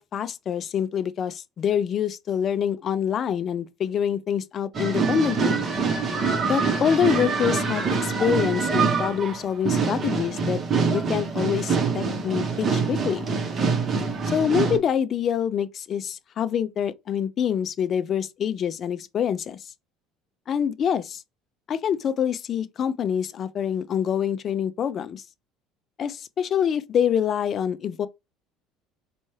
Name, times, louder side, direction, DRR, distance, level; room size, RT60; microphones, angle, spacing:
voice 1, 0.0-5.6 6.4-10.6 10.9-13.3 14.3-19.6 20.5-21.2 21.7-25.2 26.0-28.1, left 8 dB, 40° left, 0.3 m, -26 dB
sound 1, 4.7-14.8, right 5 dB, 35° right, 0.8 m, -25 dB
4.1 x 2.3 x 3.1 m
cardioid pair, 130°, 0 cm